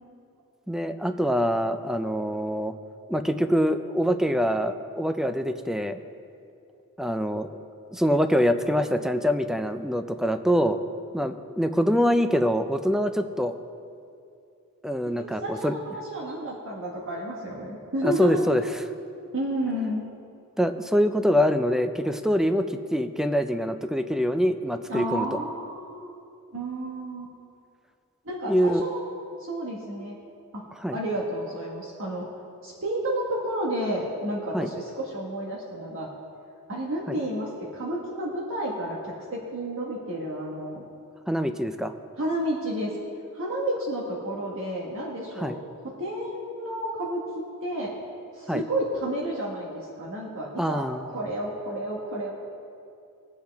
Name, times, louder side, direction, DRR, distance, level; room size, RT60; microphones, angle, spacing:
voice 1, 0.7-2.7 3.1-6.0 7.0-7.6 7.9-10.8 11.1-13.6 14.8-15.7 18.0-18.8 20.6-25.4 28.4-28.8 30.8-31.0 34.5-34.7 37.1-37.2 41.3-41.9 45.4-45.6 48.5-48.6 50.6-51.0, equal, ahead, 9 dB, 0.4 m, -24 dB
voice 2, 15.2-18.4 19.3-20.0 24.9-26.1 26.5-27.3 28.2-29.0 29.4-30.2 30.5-30.6 30.9-32.3 32.6-36.1 36.7-40.8 42.2-42.9 43.3-45.6 46.0-47.9 48.3-52.3, right 1 dB, 60° right, -3 dB, 1.5 m, -31 dB
21.0 x 7.6 x 3.5 m, 2.5 s
head